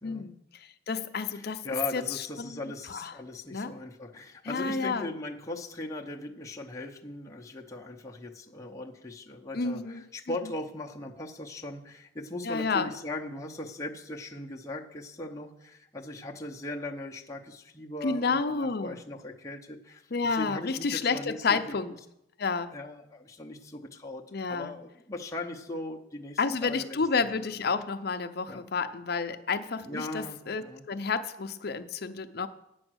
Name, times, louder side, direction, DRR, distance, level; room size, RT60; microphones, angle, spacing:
voice 1, 0.0-2.6 2.9-3.1 3.5-3.7 4.4-5.1 9.5-10.0 12.5-12.9 18.0-19.0 20.1-21.9 22.4-22.8 24.3-24.8 26.4-32.5, left 4 dB, 50° left, 9 dB, 0.6 m, -30 dB
voice 2, 1.3-21.8 22.7-27.3 28.5-28.6 29.8-30.8, left 2 dB, 15° left, 0 dB, 0.7 m, -39 dB
8.7 x 7.0 x 6.3 m, 0.87 s
head